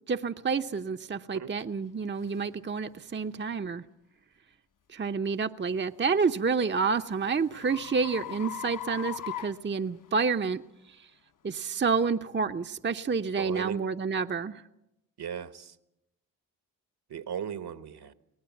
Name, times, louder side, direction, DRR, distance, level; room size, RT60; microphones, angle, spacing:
voice 1, 0.1-3.8 4.9-10.6 11.4-14.6, right 5 dB, 25° right, 7 dB, 0.8 m, -29 dB
sound 1, 1.6-1.7 2.3-2.5 3.1-3.3 5.9-10.4, left 12 dB, 45° left, 0.9 m, -41 dB
voice 2, 13.4-13.8 15.2-15.7 17.1-18.1, right 8 dB, 60° right, 12 dB, 1.3 m, -36 dB
23.5 x 18.0 x 7.2 m, 0.87 s
supercardioid pair, 40°, 44 cm